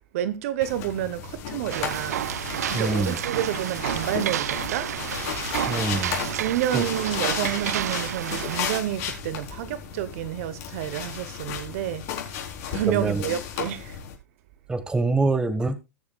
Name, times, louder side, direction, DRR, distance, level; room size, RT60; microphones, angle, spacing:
voice 1, 0.1-2.2 2.7-4.9 6.3-14.0, right 12 dB, 60° right, 1.1 m, -29 dB
sound 1, 0.6-14.1, left 8 dB, 50° left, 4.0 m, -34 dB
sound 2, 1.7-8.8, right 11 dB, 80° right, 0.5 m, -30 dB
voice 2, 2.7-3.2 5.7-6.2 6.7-6.9 12.9-13.2 14.7-15.8, right 3 dB, 10° right, 1.5 m, -25 dB
20.0 x 7.0 x 2.4 m
hypercardioid pair, 115°, 9 cm